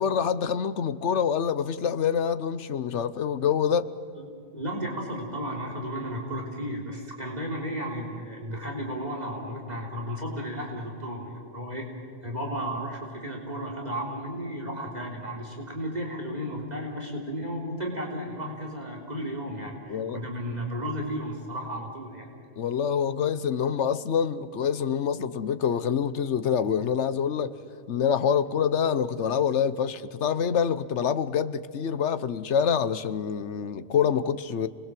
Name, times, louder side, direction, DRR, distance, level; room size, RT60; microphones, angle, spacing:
voice 1, 0.0-3.9 19.9-20.2 22.6-27.6 27.9-34.7, left 7 dB, 90° left, 1.2 m, -26 dB
voice 2, 4.2-11.9 12.2-22.3, equal, 40° right, 3.6 m, -34 dB
30.0 x 21.0 x 7.6 m
omnidirectional pair, 1.1 m